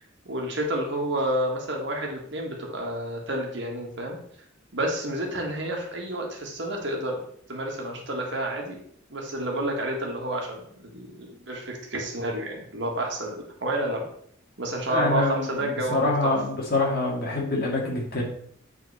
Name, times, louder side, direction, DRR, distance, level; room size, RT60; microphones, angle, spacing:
voice 1, 0.3-4.2 4.7-7.2 7.5-8.8 9.1-14.1 14.6-16.4, right 1 dB, 60° right, 0 dB, 1.8 m, -30 dB
voice 2, 14.9-18.2, left 2 dB, 50° left, -2 dB, 2.0 m, -26 dB
8.6 x 4.1 x 4.2 m, 0.64 s
head